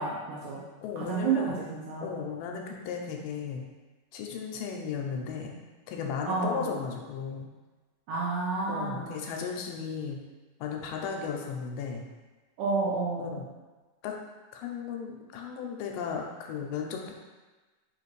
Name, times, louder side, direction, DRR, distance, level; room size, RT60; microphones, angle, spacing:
voice 1, 0.0-0.6 1.1-2.2 6.3-6.7 8.1-9.1 12.6-13.3, right 4 dB, 75° right, -5 dB, 1.8 m, -30 dB
voice 2, 0.8-1.6 2.0-3.6 4.1-5.5 5.9-7.5 8.7-10.2 10.6-12.0 13.2-13.5 14.0-14.1 14.5-17.2, left 6 dB, 85° left, 1 dB, 2.3 m, -35 dB
5.3 x 2.5 x 3.1 m, 1.3 s
omnidirectional pair, 3.9 m